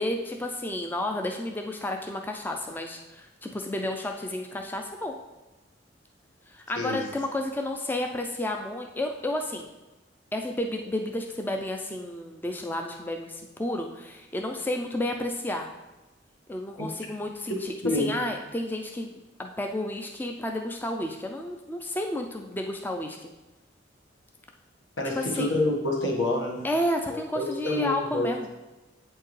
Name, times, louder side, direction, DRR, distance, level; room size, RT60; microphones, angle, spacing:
voice 1, 0.0-5.2 6.5-9.7 10.3-15.7 16.5-23.3 25.1-25.5 26.6-28.5, left 1 dB, 10° left, 3 dB, 0.4 m, -31 dB
voice 2, 25.0-26.6 27.1-28.3, left 2 dB, 80° left, -1 dB, 1.4 m, -27 dB
8.3 x 4.5 x 3.2 m, 1.1 s
head